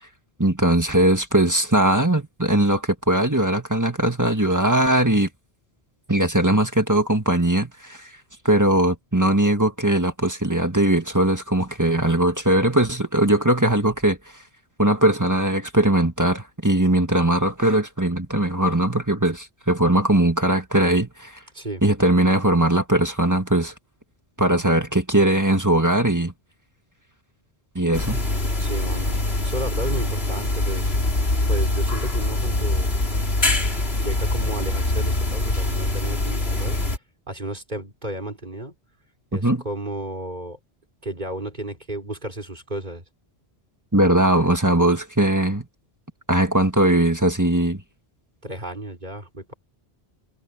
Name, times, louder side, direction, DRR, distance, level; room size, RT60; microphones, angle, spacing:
voice 1, 0.4-5.3 6.1-8.1 8.4-14.2 14.8-21.3 21.8-23.7 24.4-26.3 27.8-28.3 39.3-39.6 43.9-45.7 46.3-47.8, right 1 dB, 15° right, 1.8 m, -20 dB
voice 2, 24.4-24.8 28.6-30.9 31.5-32.9 33.5-33.7 34.0-36.8 37.3-38.7 39.3-40.6 41.0-43.0 48.4-49.5, right 1 dB, 45° right, 4.7 m, -33 dB
sound 1, 27.9-37.0, left 2 dB, 70° left, 3.2 m, -23 dB
omnidirectional pair, 1.1 m